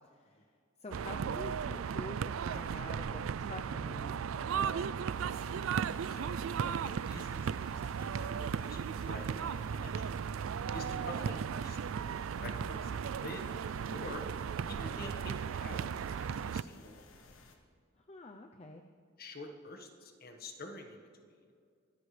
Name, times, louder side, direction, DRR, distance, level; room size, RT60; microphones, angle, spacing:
voice 1, 0.1-0.5 0.8-4.9 18.0-18.8, left 2 dB, 30° left, 4 dB, 0.6 m, -47 dB
sound 1, 0.9-16.6, right 7 dB, 85° right, 0.4 m, -36 dB
sound 2, 5.0-17.6, left 3 dB, 90° left, 1.5 m, -58 dB
voice 2, 6.0-10.2 10.7-11.8 12.3-13.5 13.9-14.3 14.7-17.3 19.2-21.3, left 2 dB, 45° left, 4 dB, 1.5 m, -48 dB
24.0 x 13.5 x 3.3 m, 2.2 s
head